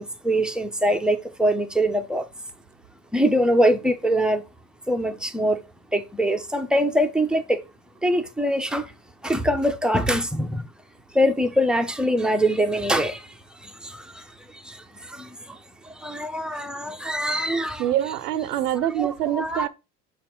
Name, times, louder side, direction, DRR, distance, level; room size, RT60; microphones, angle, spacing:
voice 1, 0.0-2.3 3.1-4.4 4.9-5.6 5.9-7.6 8.0-8.9 9.2-10.6 11.1-13.3 13.6-14.2 14.6-14.8 15.1-15.6 16.0-17.9 19.0-19.7, equal, ahead, 0.7 m, -23 dB
voice 2, 17.8-19.7, right 12 dB, 80° right, 0.8 m, -25 dB
5.9 x 4.3 x 3.8 m
hypercardioid pair, 80°, 45 cm